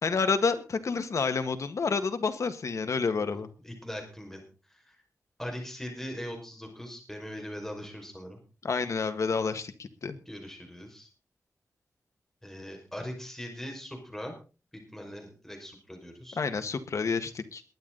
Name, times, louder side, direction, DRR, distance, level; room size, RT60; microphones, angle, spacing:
voice 1, 0.0-3.5 8.6-10.2 16.3-17.6, left 5 dB, 65° left, 8 dB, 1.7 m, -29 dB
voice 2, 3.6-4.4 4.7-5.0 5.4-8.4 10.3-11.1 12.4-14.3 14.9-16.4, equal, 5° left, 2 dB, 5.5 m, -40 dB
22.0 x 9.5 x 4.0 m, 0.34 s
wide cardioid pair, 115°, 6 cm